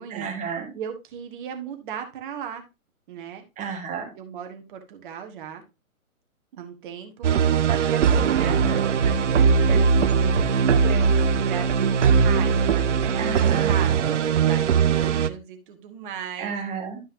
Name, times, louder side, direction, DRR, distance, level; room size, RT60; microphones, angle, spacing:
voice 1, 0.1-0.7 3.6-4.1 8.4-8.8 13.2-13.7 16.4-17.0, right 6 dB, 15° right, 1 dB, 1.8 m, -32 dB
voice 2, 0.7-2.6 3.1-3.4 4.1-5.6 6.5-16.6, right 8 dB, 35° right, 5 dB, 1.5 m, -37 dB
sound 1, 7.2-15.3, right 6 dB, 55° right, 0.7 m, -20 dB
12.0 x 5.4 x 2.7 m, 0.25 s
figure-of-eight pair, 125°, 43 cm